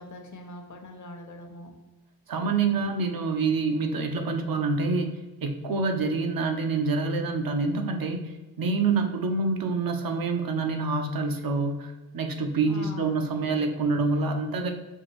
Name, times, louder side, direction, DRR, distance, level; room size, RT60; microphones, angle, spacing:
voice 1, 0.0-1.8 2.8-2.9 5.6-5.8 8.9-9.0 12.7-13.9, left 2 dB, 50° left, 4 dB, 0.7 m, -43 dB
voice 2, 2.3-5.1 5.4-8.3 8.6-14.7, right 4 dB, 65° right, 4 dB, 0.6 m, -26 dB
5.6 x 2.5 x 3.1 m, 1.2 s
wide cardioid pair, 115°, 37 cm